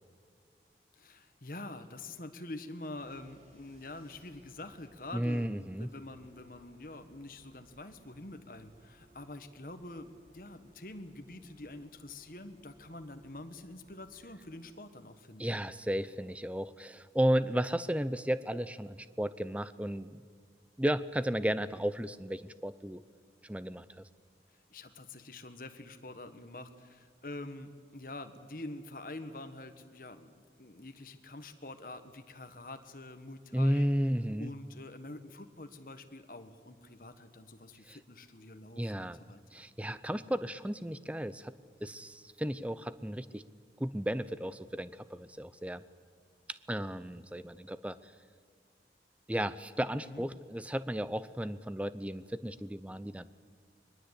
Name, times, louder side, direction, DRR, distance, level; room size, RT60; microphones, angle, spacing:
voice 1, 0.9-15.6 24.7-33.9 34.4-39.6 50.0-50.2, left 2 dB, 50° left, 8 dB, 1.5 m, -46 dB
sound 1, 3.0-16.9, right 1 dB, 40° right, 5.1 m, -64 dB
voice 2, 5.1-5.9 15.4-20.2 20.8-23.0 23.4-24.1 33.5-34.5 37.9-38.0 38.8-39.2 39.5-41.5 41.8-43.4 43.8-45.8 46.7-48.1 49.3-53.3, equal, 10° right, 15 dB, 0.5 m, -33 dB
22.5 x 20.5 x 8.3 m, 2.1 s
head